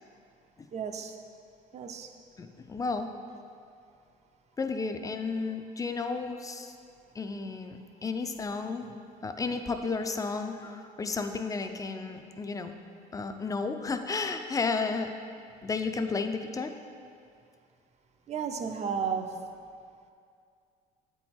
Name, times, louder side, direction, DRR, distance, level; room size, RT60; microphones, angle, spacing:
voice 1, 0.7-1.2 1.7-2.1 18.3-19.4, right 6 dB, 40° right, 6 dB, 0.5 m, -33 dB
voice 2, 2.4-3.1 4.6-6.7 7.2-8.9 9.2-12.8 13.1-15.1 15.6-16.7, left 4 dB, 20° left, 7 dB, 0.4 m, -32 dB
7.9 x 4.6 x 4.4 m, 2.4 s
cardioid pair, 110°, 17 cm